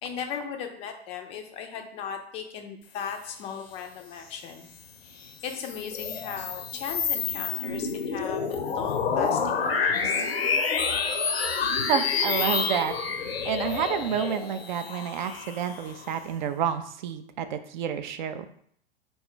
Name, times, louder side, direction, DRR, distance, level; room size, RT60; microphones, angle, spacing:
voice 1, 0.0-4.7 5.0-10.2, left 7 dB, 20° left, 5 dB, 0.4 m, -37 dB
sound 1, 5.2-16.2, left 5 dB, 70° left, 0.5 m, -28 dB
voice 2, 11.9-12.9 13.4-18.5, right 8 dB, 50° right, 10 dB, 0.4 m, -29 dB
3.9 x 2.3 x 3.7 m, 0.65 s
figure-of-eight pair, 95°, 32 cm